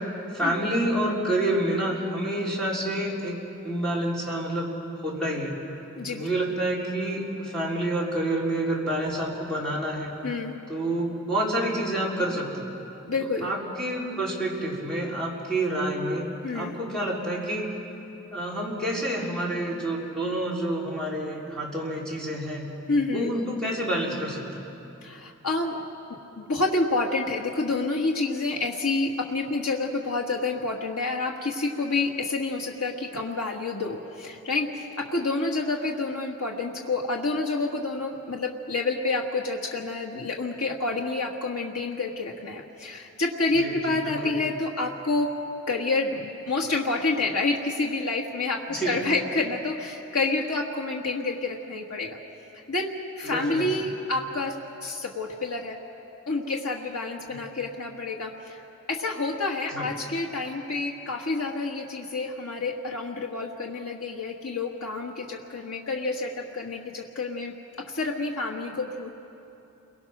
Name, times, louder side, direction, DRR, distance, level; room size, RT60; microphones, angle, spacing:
voice 1, 0.3-4.7 5.0-5.6 6.1-10.1 10.7-12.7 13.4-17.7 18.3-22.6 23.1-24.6 43.5-44.4 48.7-49.0 53.2-53.7 57.3-57.4 59.7-59.9, right 1 dB, 5° left, -5 dB, 4.2 m, -28 dB
voice 2, 6.0-6.3 10.2-10.6 13.1-13.5 16.4-16.8 22.9-23.3 25.0-25.8 26.4-45.3 45.7-52.2 52.7-54.5 54.8-55.8 56.3-58.6 58.9-67.5 67.9-69.1, left 3 dB, 85° left, 0 dB, 1.7 m, -28 dB
29.0 x 22.5 x 6.1 m, 2.9 s
head